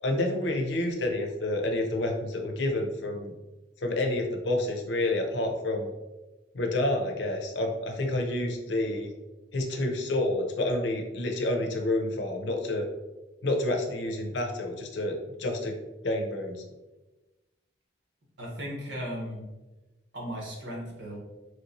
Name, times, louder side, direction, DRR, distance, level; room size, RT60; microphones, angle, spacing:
voice 1, 0.0-3.3 3.8-5.9 6.5-9.1 9.5-12.9 13.4-15.8 16.0-16.6, left 1 dB, 70° left, 3 dB, 0.5 m, -29 dB
voice 2, 18.4-19.4 20.1-21.2, equal, 70° right, -2 dB, 1.0 m, -36 dB
3.1 x 2.9 x 2.6 m, 1.1 s
head